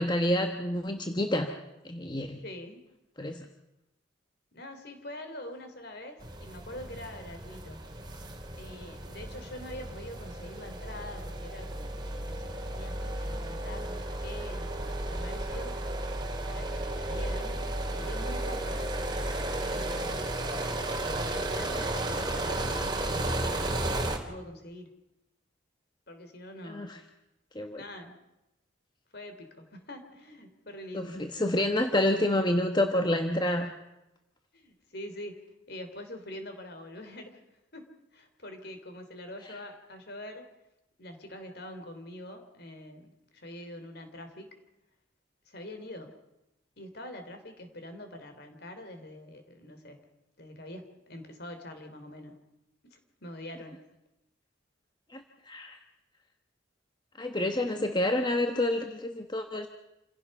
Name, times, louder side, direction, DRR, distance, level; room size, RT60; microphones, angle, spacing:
voice 1, 0.0-1.5 1.8-2.4 3.2-3.5 26.6-27.0 27.5-27.8 30.9-33.7 39.5-39.6 55.1-55.8 57.2-59.7, left 1 dB, 20° left, 5 dB, 1.2 m, -28 dB
voice 2, 2.4-2.8 4.5-7.8 8.6-15.8 16.4-17.6 17.9-18.8 19.5-20.3 21.3-24.9 26.1-27.0 27.8-28.2 29.1-31.1 34.5-37.4 37.7-37.9 38.1-40.4 41.0-44.5 45.5-46.1 46.8-50.0 50.4-52.4 52.9-53.9, left 1 dB, 55° left, 7 dB, 3.3 m, -44 dB
sound 1, 6.2-24.2, right 1 dB, 20° right, 2.6 m, -34 dB
28.5 x 17.0 x 5.5 m, 0.92 s
head